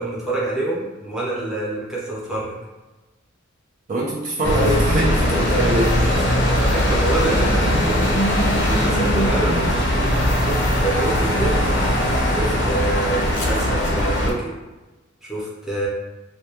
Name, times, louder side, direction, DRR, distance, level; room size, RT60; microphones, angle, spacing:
voice 1, 0.0-2.6 5.3-5.7 6.6-14.5 15.2-15.9, right 2 dB, ahead, -8 dB, 0.6 m, -27 dB
voice 2, 3.9-6.2, right 1 dB, 40° right, -5 dB, 0.4 m, -23 dB
sound 1, 4.4-14.3, equal, 60° left, 0.5 m, -20 dB
2.2 x 2.2 x 2.8 m, 1.2 s
head